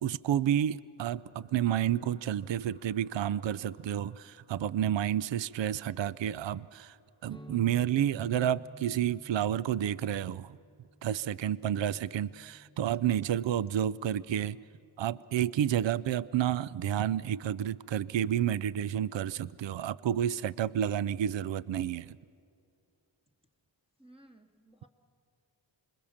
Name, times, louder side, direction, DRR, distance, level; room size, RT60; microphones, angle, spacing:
voice 1, 0.0-7.0 7.2-10.6 11.0-14.6 15.0-22.2, right 10 dB, 65° right, 0.5 m, -30 dB
sound 1, 1.1-9.6 10.3-10.6 10.8-10.9, right 1 dB, 90° right, 2.7 m, -65 dB
sound 2, 7.3-14.9, equal, 10° left, 1.0 m, -54 dB
voice 2, 24.0-24.9, right 1 dB, 10° right, 1.8 m, -57 dB
26.0 x 22.0 x 7.2 m
wide cardioid pair, 75°, 47 cm